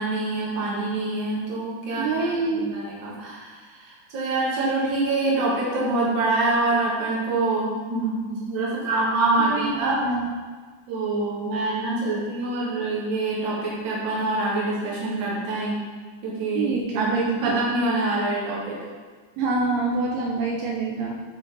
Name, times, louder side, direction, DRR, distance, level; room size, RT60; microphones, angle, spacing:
voice 1, 0.0-10.0 10.9-15.8 16.2-18.8, right 2 dB, 50° right, -6 dB, 1.6 m, -25 dB
voice 2, 2.0-2.8 9.4-10.3 16.5-17.7 19.4-21.1, right 3 dB, 85° right, -1 dB, 1.5 m, -26 dB
6.6 x 4.0 x 3.8 m, 1.5 s
omnidirectional pair, 3.6 m